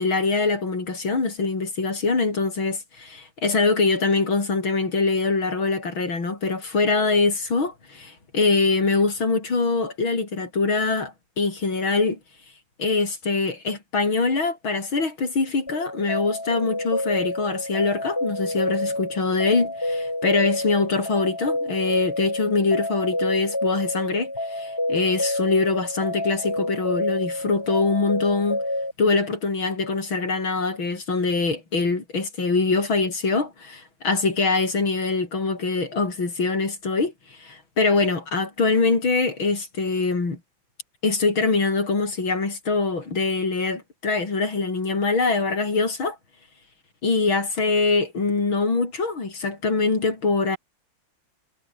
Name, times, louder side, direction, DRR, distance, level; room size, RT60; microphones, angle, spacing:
voice 1, 0.0-12.2 12.8-28.6 29.0-40.4 41.0-46.2 47.0-50.6, left 3 dB, 85° left, 5.5 m, -23 dB
sound 1, 15.7-28.9, left 1 dB, 10° left, 2.4 m, -28 dB
omnidirectional pair, 2.1 m